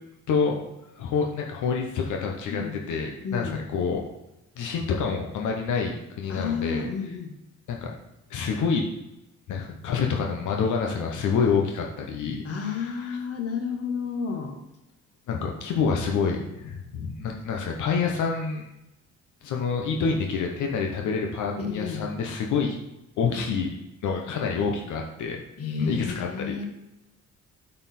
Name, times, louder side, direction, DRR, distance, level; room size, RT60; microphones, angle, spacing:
voice 1, 0.3-0.6 0.9-2.6 2.9-4.0 4.6-6.9 7.7-7.9 8.3-8.8 9.5-13.2 15.3-18.7 19.4-22.8 23.2-23.7 24.0-25.4 25.8-26.6, left 5 dB, 80° left, 1 dB, 1.0 m, -27 dB
voice 2, 3.2-3.7 6.3-7.3 12.4-14.6 21.6-22.1 25.6-26.6, left 5 dB, 50° left, 4 dB, 1.4 m, -31 dB
8.7 x 4.3 x 4.3 m, 0.93 s
cardioid pair, 90°, 30 cm